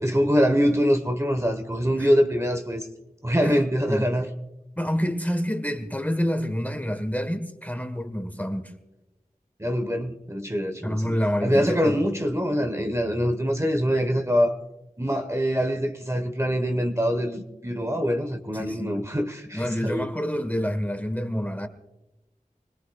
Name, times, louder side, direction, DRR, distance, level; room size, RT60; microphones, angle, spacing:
voice 1, 0.0-2.9 3.2-4.3 9.6-11.1 11.4-14.5 15.0-20.1, equal, 20° right, 1.1 m, -24 dB
voice 2, 4.8-8.7 10.8-12.0 17.9-18.0 18.5-19.0 19.5-21.7, equal, 10° left, 1.2 m, -28 dB
25.0 x 19.0 x 2.3 m
wide cardioid pair, 45°, 15 cm